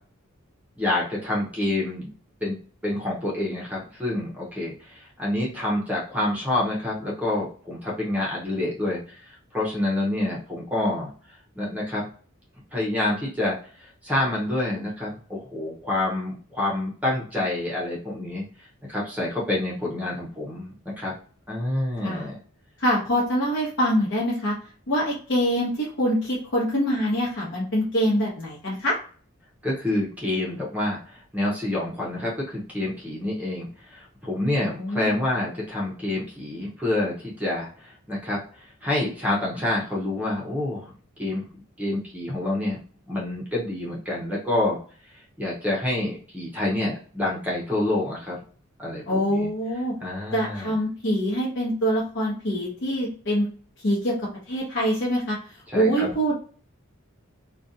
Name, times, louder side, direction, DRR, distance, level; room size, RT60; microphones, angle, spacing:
voice 1, 0.8-2.1 2.4-2.6 2.8-11.1 11.6-12.1 12.7-18.4 18.9-21.1 21.5-22.3 29.6-38.4 38.8-40.9 41.2-41.4 41.8-42.8 43.1-44.8 45.4-48.4 48.8-49.5 50.0-50.7 55.7-56.1, left 1 dB, 5° right, -4 dB, 0.7 m, -27 dB
voice 2, 22.8-24.6 24.9-28.9 34.6-35.2 49.1-49.9 50.3-53.5 53.8-54.2 54.5-55.4 55.7-56.3, equal, 60° left, -4 dB, 0.9 m, -24 dB
2.5 x 2.2 x 2.6 m, 0.41 s
head